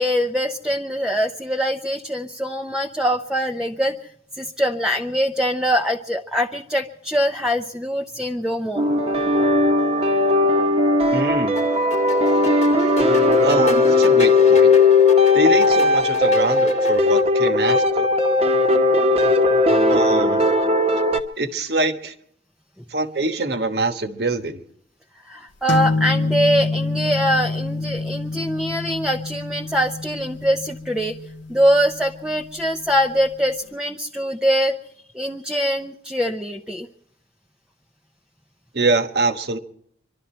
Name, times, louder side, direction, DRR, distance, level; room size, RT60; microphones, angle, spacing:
voice 1, 0.0-3.9 4.3-8.8 25.2-31.2 31.5-34.7 35.1-36.9, equal, 5° right, 3 dB, 0.6 m, -23 dB
sound 1, 8.8-21.2, left 2 dB, 30° right, 1.1 m, -17 dB
voice 2, 11.1-11.6 13.4-14.7 15.3-18.1 19.9-20.5 21.4-22.1 22.9-24.6 38.7-39.6, right 3 dB, 55° right, 8 dB, 1.3 m, -24 dB
sound 2, 11.6-17.2, left 1 dB, 35° left, 1.2 m, -31 dB
sound 3, 25.7-33.2, left 3 dB, 80° left, 0.6 m, -27 dB
26.0 x 12.0 x 4.4 m, 0.71 s
head